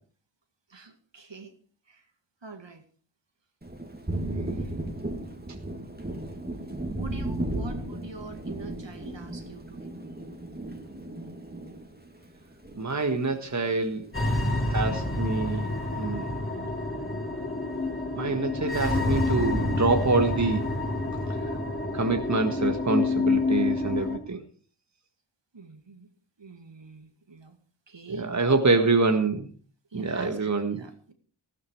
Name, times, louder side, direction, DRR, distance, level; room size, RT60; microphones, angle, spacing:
voice 1, 0.7-1.6 1.9-2.0 2.4-2.8 4.1-4.7 6.9-9.9 25.5-26.1 26.4-27.6 27.9-28.3 29.9-31.1, right 4 dB, 60° right, 7 dB, 2.2 m, -44 dB
Thunder, 3.6-13.4 13.7-14.8, right 1 dB, 20° right, 2.5 m, -35 dB
voice 2, 12.8-14.0 14.7-15.7 16.0-16.3 18.1-20.6 21.9-24.4 28.2-29.5 29.9-30.8, right 3 dB, 35° right, 6 dB, 1.6 m, -26 dB
sound 1, 14.1-24.2, left 2 dB, 25° left, 4.1 m, -28 dB
14.0 x 13.0 x 4.7 m, 0.42 s
cardioid pair, 45°, 49 cm